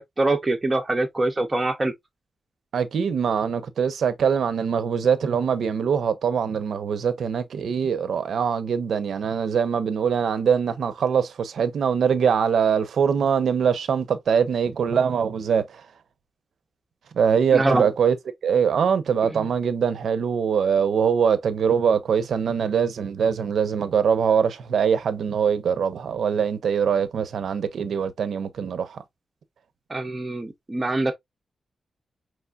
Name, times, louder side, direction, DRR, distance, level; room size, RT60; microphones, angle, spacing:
voice 1, 0.0-1.9 17.5-17.9 29.9-31.1, right 2 dB, 20° right, 0.5 m, -24 dB
voice 2, 2.7-15.8 17.1-18.2 18.4-29.0, right 7 dB, 75° right, 0.6 m, -23 dB
5.6 x 3.1 x 2.3 m
wide cardioid pair, 170°, 0 cm